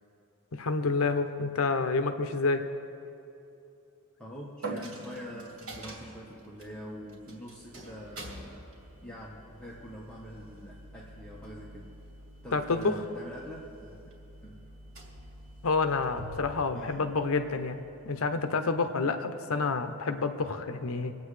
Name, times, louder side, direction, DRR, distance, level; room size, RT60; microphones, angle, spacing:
voice 1, 0.5-2.6 12.5-13.0 15.6-21.1, left 4 dB, 70° left, 8 dB, 0.7 m, -28 dB
voice 2, 4.2-11.9 12.4-14.0 14.4-14.7 16.7-17.1, equal, 5° left, -6 dB, 1.2 m, -45 dB
sound 1, 4.6-18.1, right 3 dB, 65° right, 1.2 m, -48 dB
Coin (dropping), 4.6-18.4, right 1 dB, 85° right, 2.6 m, -49 dB
25.5 x 8.8 x 3.3 m, 2.8 s
head